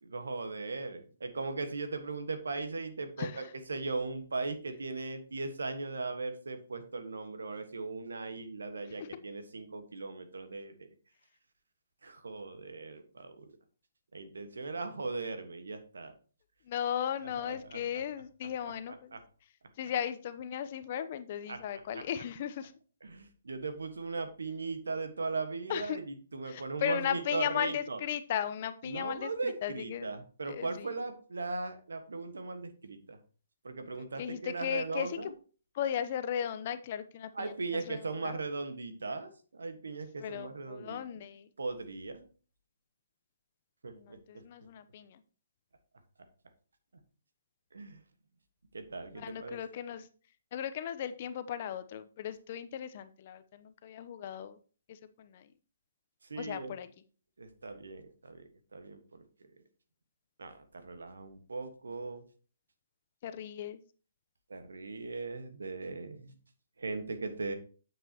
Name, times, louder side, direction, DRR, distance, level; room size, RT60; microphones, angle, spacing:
voice 1, 0.0-10.9 12.0-13.5 14.1-16.1 17.2-18.0 18.9-19.2 21.5-22.0 23.0-28.0 28.8-33.2 33.6-35.3 37.3-41.2 41.6-42.2 43.8-44.4 47.7-48.0 48.7-49.6 56.3-56.7 57.4-58.4 58.7-59.0 60.4-62.2 64.5-66.3 66.8-67.5, right 3 dB, 75° right, 8 dB, 1.4 m, -38 dB
voice 2, 16.7-19.1 19.8-22.7 25.7-26.0 26.5-29.3 29.6-30.1 30.4-30.7 34.0-35.1 35.8-38.3 40.2-41.4 44.1-45.1 49.2-50.1 50.5-54.5 55.2-55.4 56.4-56.9 63.2-63.8, left 9 dB, 45° left, 11 dB, 0.8 m, -36 dB
9.1 x 7.4 x 2.9 m, 0.39 s
figure-of-eight pair, 135°, 0 cm